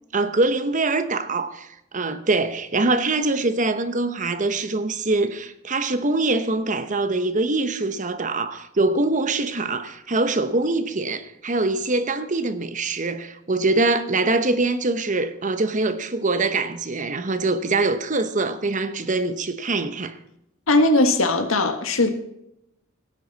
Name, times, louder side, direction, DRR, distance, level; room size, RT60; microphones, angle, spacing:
voice 1, 0.1-20.1, right 3 dB, 40° right, 1.0 m, -23 dB
voice 2, 20.7-22.1, left 2 dB, 85° left, 1.6 m, -19 dB
16.5 x 9.5 x 4.1 m
head